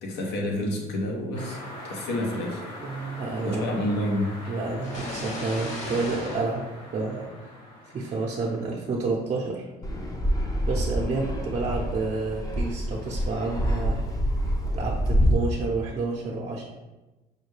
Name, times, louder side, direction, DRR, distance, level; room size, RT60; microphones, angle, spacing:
voice 1, 0.0-1.6 1.8-2.6 3.4-4.3, left 1 dB, 85° left, 0 dB, 0.8 m, -28 dB
sound 1, 1.3-9.0, left 1 dB, 60° left, 1.2 m, -43 dB
voice 2, 2.8-3.9 4.5-6.7 6.9-7.3 7.9-9.7 10.7-14.0 14.7-16.6, right 3 dB, 40° right, -2 dB, 0.5 m, -29 dB
sound 2, 4.8-7.6, left 1 dB, 45° left, 1.0 m, -36 dB
Fixed-wing aircraft airplane, 9.8-15.3, equal, 20° left, 0.5 m, -26 dB
4.9 x 2.2 x 3.2 m, 1.1 s
cardioid pair, 110°, 17 cm